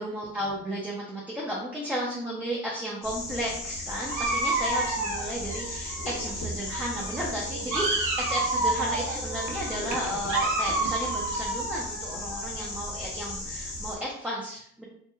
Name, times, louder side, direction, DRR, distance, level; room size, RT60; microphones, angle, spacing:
voice 1, 0.0-14.8, equal, 5° right, -4 dB, 0.5 m, -33 dB
sound 1, 3.0-14.0, left 1 dB, 65° left, 0.9 m, -36 dB
Dog, 4.0-6.4 6.7-12.7, right 2 dB, 80° right, 0.6 m, -30 dB
3.0 x 2.2 x 2.3 m, 0.67 s
cardioid pair, 90°, 30 cm